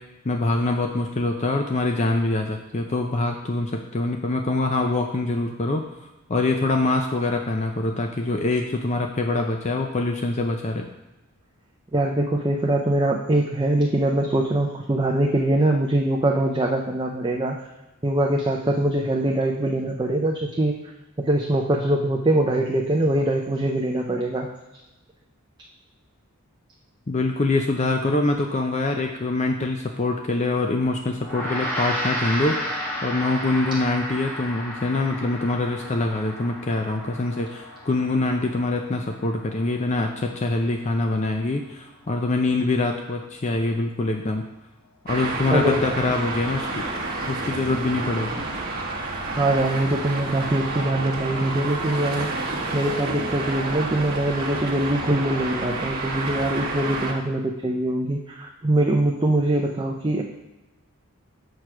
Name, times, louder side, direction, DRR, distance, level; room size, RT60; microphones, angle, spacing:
voice 1, 0.2-5.8 6.3-10.9 27.1-32.6 33.0-44.4 45.0-46.8 47.3-48.4, left 2 dB, 30° left, 3 dB, 0.5 m, -24 dB
voice 2, 11.9-17.6 18.0-20.8 21.2-24.5 45.5-46.1 49.4-60.2, right 1 dB, 20° right, 0 dB, 0.5 m, -23 dB
Gong, 31.2-40.7, equal, 10° left, 1.8 m, -33 dB
Traffic noise roadway noise, 45.1-57.1, right 2 dB, 40° right, 1.4 m, -30 dB
6.6 x 4.6 x 6.0 m, 1.0 s
head